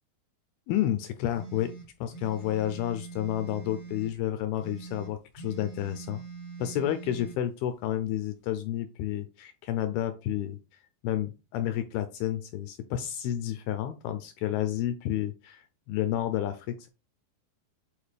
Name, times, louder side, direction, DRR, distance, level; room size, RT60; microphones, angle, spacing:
voice 1, 0.7-1.7 2.0-6.2 6.6-10.6 11.0-16.9, left 12 dB, 85° left, 10 dB, 2.2 m, -30 dB
sound 1, 1.3-4.1 4.6-7.4, right 5 dB, 45° left, 0.5 m, -43 dB
9.1 x 4.2 x 3.4 m, 0.29 s
omnidirectional pair, 5.0 m